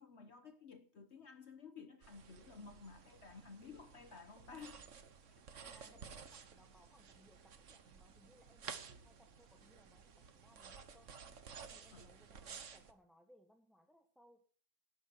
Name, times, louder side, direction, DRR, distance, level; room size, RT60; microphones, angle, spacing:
voice 1, 0.0-6.0 11.9-12.1, left 5 dB, 50° left, 1.2 m, -55 dB
sound 1, 2.0-12.9, right 6 dB, 55° right, 1.4 m, -54 dB
voice 2, 5.7-11.1 11.7-14.4, equal, ahead, 1.0 m, -67 dB
18.0 x 11.0 x 4.5 m
omnidirectional pair, 1.6 m